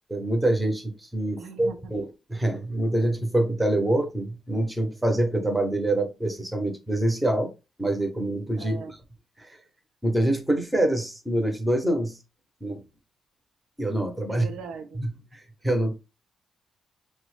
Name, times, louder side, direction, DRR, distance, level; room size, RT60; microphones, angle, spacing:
voice 1, 0.1-7.5 7.8-9.0 9.4-9.6 10.0-12.2 12.6-12.8 13.8-14.5 14.9-15.9, right 1 dB, 5° right, 0.7 m, -26 dB
voice 2, 1.4-1.9 8.6-9.0 14.3-15.0, right 6 dB, 85° right, 0.5 m, -40 dB
5.9 x 2.1 x 3.1 m
wide cardioid pair, 170°, 0 cm